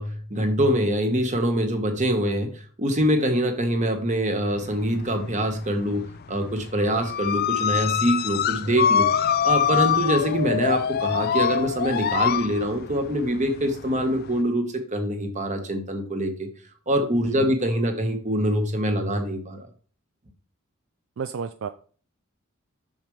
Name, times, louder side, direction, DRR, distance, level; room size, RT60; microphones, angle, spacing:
voice 1, 0.0-2.5 2.8-9.1 9.4-16.5 16.9-19.7, equal, 35° right, 6 dB, 1.3 m, -24 dB
sound 1, 4.6-5.5 5.8-14.4, left 8 dB, 45° left, 0.4 m, -25 dB
voice 2, 21.2-21.7, right 6 dB, 65° right, 11 dB, 0.4 m, -31 dB
7.1 x 6.6 x 3.2 m, 0.42 s
head